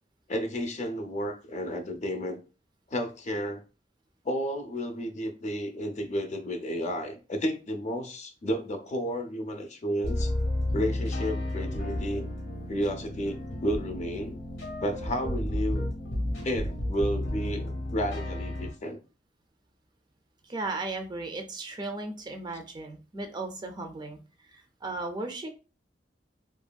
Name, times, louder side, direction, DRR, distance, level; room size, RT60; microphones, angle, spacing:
voice 1, 0.3-2.4 2.9-3.6 4.2-10.3 10.7-12.2 12.7-14.4 14.8-15.9 16.4-19.0, equal, 40° left, 6 dB, 0.5 m, -32 dB
sound 1, 10.0-18.7, left 1 dB, 80° left, 0.9 m, -32 dB
voice 2, 20.4-24.2 24.5-25.5, right 2 dB, 25° right, 4 dB, 0.4 m, -36 dB
2.9 x 2.5 x 2.2 m, 0.33 s
head